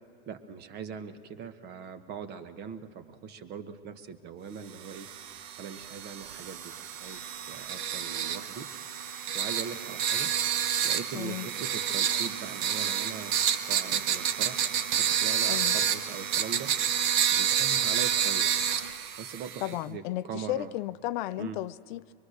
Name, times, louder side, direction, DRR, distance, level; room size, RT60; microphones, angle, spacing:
voice 1, 0.3-5.1 5.6-6.7 7.0-8.7 9.3-10.3 10.8-14.6 15.0-16.7 17.3-18.8 19.2-20.7 21.4-21.6, right 7 dB, 35° right, 1.3 m, -41 dB
sound 1, 4.8-19.7, right 9 dB, 55° right, 1.2 m, -29 dB
voice 2, 11.1-11.5 15.5-15.8 19.6-22.1, left 15 dB, 55° left, 0.5 m, -34 dB
24.0 x 23.0 x 6.5 m
supercardioid pair, 145°, 29 cm